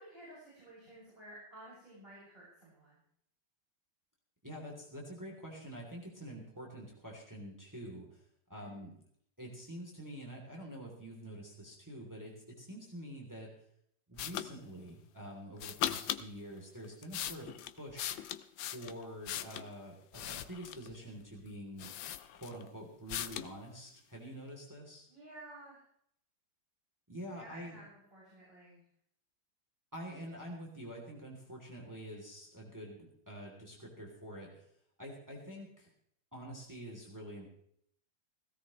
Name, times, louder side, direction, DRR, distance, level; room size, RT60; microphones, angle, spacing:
voice 1, 0.0-3.0 8.5-8.9 25.1-25.8 27.3-28.8, right 1 dB, 30° right, -8 dB, 7.2 m, -53 dB
voice 2, 4.4-8.2 8.5-8.9 9.4-13.5 14.1-17.5 17.8-18.1 18.6-21.9 22.3-25.1 27.1-27.8 29.9-34.6 35.0-35.9 36.3-37.5, equal, 10° right, -1 dB, 3.0 m, -47 dB
sound 1, 14.2-14.5 15.6-16.3 16.8-19.7 20.1-20.9 21.5-21.6 21.8-22.7 23.1-23.5, left 11 dB, 90° left, 1.5 m, -39 dB
17.5 x 16.5 x 3.2 m, 0.67 s
omnidirectional pair, 2.0 m